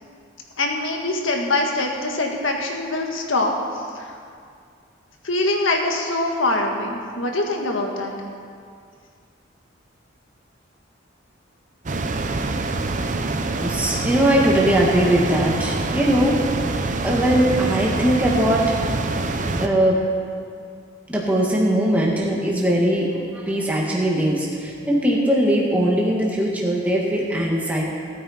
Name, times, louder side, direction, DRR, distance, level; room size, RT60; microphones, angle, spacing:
voice 1, 0.6-4.2 5.2-8.1, left 2 dB, 80° left, 2 dB, 1.7 m, -24 dB
sound 1, 11.9-19.7, right 2 dB, 40° right, 0.7 m, -25 dB
voice 2, 13.6-16.4 17.0-18.7 19.1-19.3 19.6-20.0 21.1-27.8, right 1 dB, 10° right, -3 dB, 1.7 m, -20 dB
18.0 x 9.4 x 4.3 m, 2.3 s
head